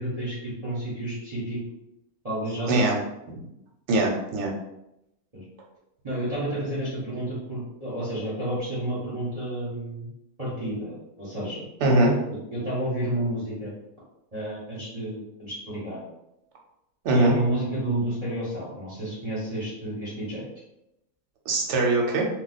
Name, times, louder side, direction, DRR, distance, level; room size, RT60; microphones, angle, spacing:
voice 1, 0.0-1.6 2.2-2.8 5.3-5.4 6.0-10.1 10.4-11.6 12.5-13.7 14.3-16.0 17.1-20.4, right 1 dB, 30° right, -9 dB, 0.8 m, -30 dB
voice 2, 3.9-4.5 11.8-12.1 17.0-17.3 21.5-22.3, right 2 dB, 60° right, 0 dB, 0.9 m, -21 dB
2.3 x 2.3 x 3.9 m, 0.86 s
omnidirectional pair, 1.5 m